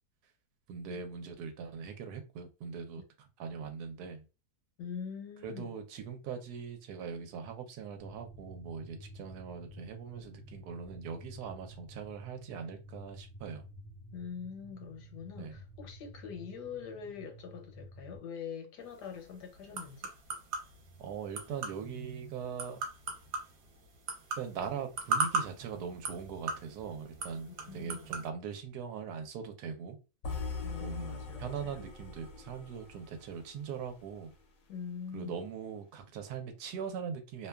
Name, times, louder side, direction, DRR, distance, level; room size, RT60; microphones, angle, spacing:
voice 1, 0.7-3.0 3.4-4.2 5.4-13.6 15.4-15.5 21.0-22.8 24.4-27.5 27.7-30.0 30.8-34.3 35.1-37.5, right 6 dB, 80° right, 1.1 m, -41 dB
voice 2, 4.8-5.8 14.1-20.1 24.6-24.8 27.5-28.1 30.6-31.8 34.7-35.4, left 7 dB, 80° left, 1.3 m, -44 dB
sound 1, 8.0-18.2, equal, 5° left, 0.5 m, -51 dB
sound 2, 18.8-28.3, right 4 dB, 60° right, 1.1 m, -39 dB
sound 3, 30.2-34.4, left 4 dB, 65° left, 0.9 m, -42 dB
2.8 x 2.2 x 2.2 m
omnidirectional pair, 1.8 m